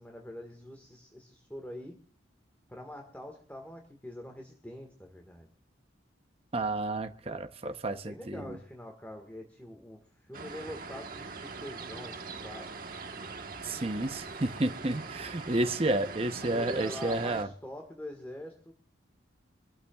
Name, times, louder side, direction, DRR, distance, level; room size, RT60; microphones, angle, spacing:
voice 1, 0.0-1.9 2.7-5.5 7.2-12.7 15.5-15.7 16.4-18.7, left 1 dB, 10° left, 3 dB, 1.6 m, -45 dB
voice 2, 6.5-8.5 13.6-17.5, right 2 dB, 30° right, 8 dB, 0.8 m, -31 dB
sound 1, 10.3-17.4, right 4 dB, 45° right, 1.3 m, -42 dB
25.5 x 14.0 x 2.4 m, 0.42 s
head